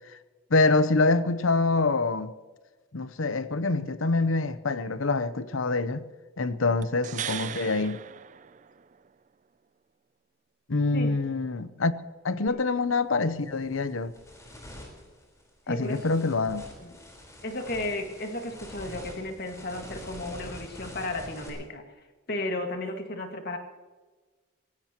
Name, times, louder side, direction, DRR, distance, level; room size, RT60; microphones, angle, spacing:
voice 1, 0.5-2.3 2.9-6.1 6.4-8.0 10.7-11.9 12.2-14.1 15.7-16.6, left 3 dB, 80° left, 0.8 m, -25 dB
sound 1, 6.8-9.1 12.5-12.6, right 9 dB, 40° right, 0.4 m, -38 dB
sound 2, 12.6-12.8 13.3-21.5, left 1 dB, 15° left, 4.4 m, -45 dB
voice 2, 15.7-16.0 16.8-16.9 17.4-21.8 22.3-23.6, left 1 dB, 50° left, 2.0 m, -34 dB
24.5 x 17.0 x 3.0 m
head